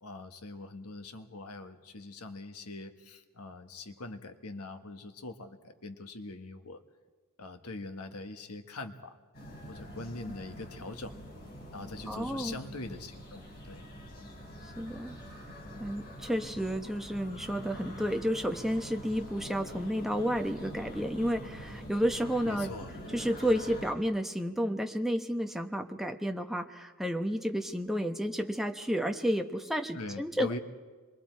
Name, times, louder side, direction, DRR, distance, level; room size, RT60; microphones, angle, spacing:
voice 1, 0.0-6.8 7.4-9.2 9.7-11.1 11.7-13.8 22.4-22.9 29.9-30.6, left 2 dB, 85° left, 7 dB, 1.4 m, -43 dB
sound 1, 9.3-23.9, equal, 45° left, 5.6 m, -45 dB
voice 2, 12.1-12.6 14.8-15.2 15.8-22.7 23.1-30.6, equal, ahead, 5 dB, 1.0 m, -31 dB
26.5 x 22.5 x 4.6 m, 1.4 s
head